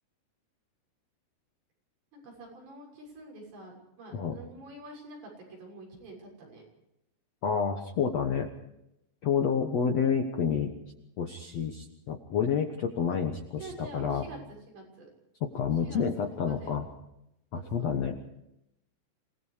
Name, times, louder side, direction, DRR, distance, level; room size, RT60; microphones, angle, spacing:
voice 1, 2.1-6.6 13.6-15.1 15.8-16.7 17.5-18.0, right 2 dB, 90° right, -1 dB, 8.9 m, -47 dB
voice 2, 7.4-8.5 9.2-10.7 11.2-14.2 15.4-16.8 17.5-18.2, left 7 dB, 70° left, 4 dB, 1.5 m, -29 dB
27.5 x 19.0 x 5.0 m, 0.85 s
omnidirectional pair, 4.9 m